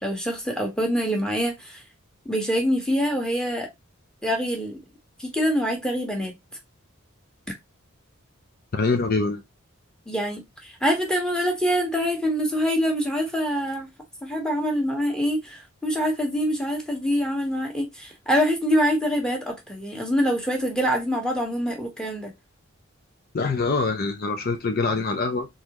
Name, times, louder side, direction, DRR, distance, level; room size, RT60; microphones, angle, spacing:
voice 1, 0.0-1.8 2.2-3.7 4.2-4.8 5.2-6.3 10.1-13.9 14.2-22.3, equal, 5° left, 1.3 m, -25 dB
voice 2, 8.7-9.4 23.3-25.5, left 3 dB, 45° left, 0.5 m, -24 dB
3.9 x 3.8 x 3.0 m
head